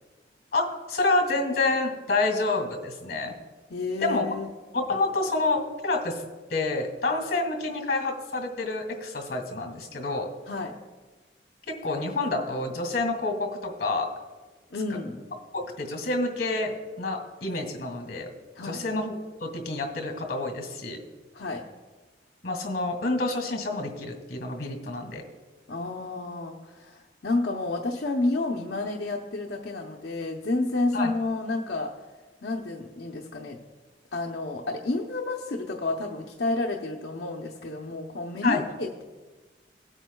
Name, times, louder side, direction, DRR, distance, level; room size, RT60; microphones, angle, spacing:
voice 1, 0.5-3.3 4.0-4.4 4.7-6.2 6.5-10.3 11.7-14.1 15.5-18.3 18.6-19.1 19.4-21.0 22.4-25.2 30.9-31.1 38.4-38.6, left 2 dB, 60° left, 5 dB, 2.0 m, -28 dB
voice 2, 3.7-4.5 10.5-10.7 14.7-15.2 18.5-18.8 21.3-21.6 25.7-31.9 32.4-33.6 34.1-39.0, left 2 dB, 75° left, 0 dB, 0.7 m, -30 dB
18.0 x 9.0 x 2.3 m, 1.3 s
head